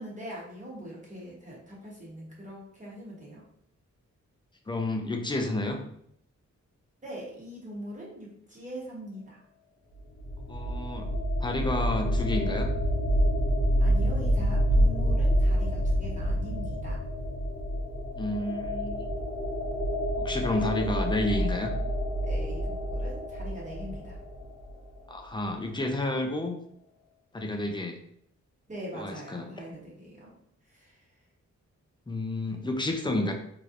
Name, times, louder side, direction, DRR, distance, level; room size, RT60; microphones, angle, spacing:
voice 1, 0.0-3.4 7.0-9.4 13.8-17.0 22.2-24.2 28.7-30.3 30.7-31.0, equal, 25° right, -5 dB, 0.9 m, -42 dB
voice 2, 4.7-5.8 10.5-11.1 11.4-12.7 18.2-19.0 20.2-21.7 25.1-26.6 27.3-28.0 28.9-29.7 32.1-33.3, left 2 dB, 15° left, 4 dB, 0.4 m, -30 dB
sound 1, 10.0-24.8, equal, 70° left, 0.7 m, -28 dB
3.2 x 2.8 x 2.4 m, 0.69 s
wide cardioid pair, 120°, 30 cm